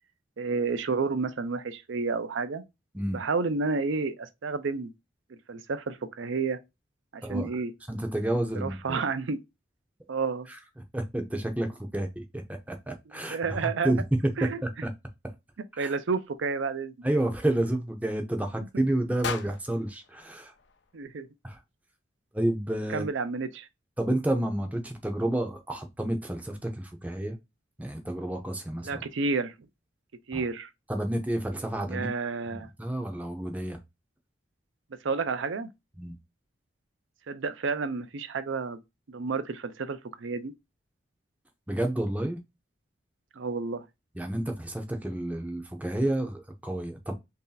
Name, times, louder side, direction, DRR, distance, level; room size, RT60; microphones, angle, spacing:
voice 1, 0.4-2.6 3.1-4.9 5.3-6.6 7.1-7.7 8.6-9.4 10.1-10.5 13.3-13.9 14.4-14.6 15.8-16.9 20.9-21.3 22.9-23.7 28.8-29.5 30.3-30.7 31.9-32.7 35.0-35.7 37.3-38.8 39.1-40.5 43.4-43.8, right 4 dB, 70° right, 0.5 m, -30 dB
voice 2, 7.9-9.0 10.5-10.6 10.9-14.9 15.8-15.9 17.0-20.5 21.4-21.6 22.3-23.1 24.0-27.4 27.8-29.0 30.3-30.4 30.9-32.1 32.5-33.8 36.0-36.1 41.7-42.4 44.2-47.1, right 1 dB, 5° right, 0.6 m, -30 dB
sound 1, 19.2-21.4, left 5 dB, 60° left, 0.5 m, -39 dB
3.2 x 2.7 x 3.8 m
head